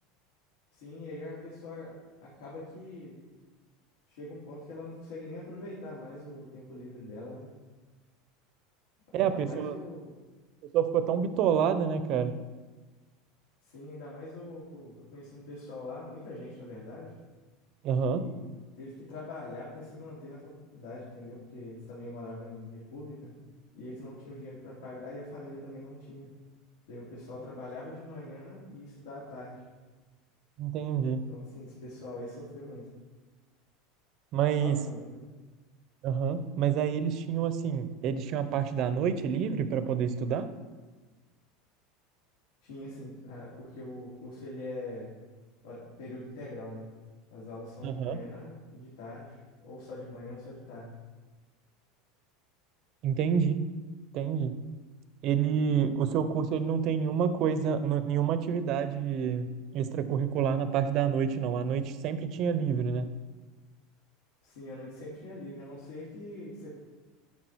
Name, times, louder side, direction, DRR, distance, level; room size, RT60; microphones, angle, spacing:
voice 1, 0.7-3.1 4.1-7.5 9.1-10.2 13.6-17.1 18.0-18.5 18.8-23.3 23.7-26.3 26.9-29.6 31.3-32.9 34.6-35.3 42.6-45.1 45.6-46.9 47.3-50.9 64.4-66.7, left 2 dB, 80° left, -8 dB, 2.9 m, -43 dB
voice 2, 9.1-9.8 10.7-12.3 17.8-18.2 30.6-31.2 34.3-34.8 36.0-40.5 47.8-48.2 53.0-53.6 54.1-54.5 55.2-63.1, right 7 dB, 40° right, 11 dB, 0.6 m, -28 dB
10.5 x 5.9 x 4.6 m, 1.3 s
supercardioid pair, 170°, 0 cm